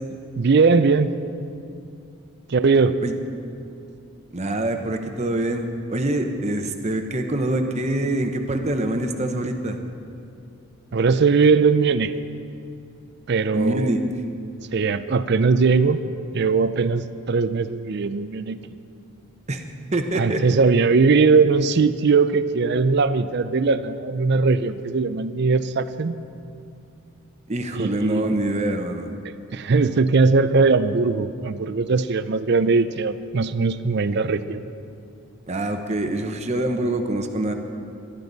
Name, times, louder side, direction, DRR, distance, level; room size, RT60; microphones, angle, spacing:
voice 1, 0.4-1.1 2.5-3.0 10.9-12.1 13.3-13.9 14.7-16.0 16.3-18.6 20.2-26.2 27.7-28.3 29.2-34.6, right 4 dB, 50° right, 13 dB, 0.5 m, -20 dB
voice 2, 4.3-9.8 13.5-14.0 19.5-19.6 19.9-20.4 27.5-29.1 35.5-37.5, right 1 dB, 30° right, 5 dB, 0.9 m, -25 dB
22.0 x 11.5 x 4.0 m, 2.6 s
head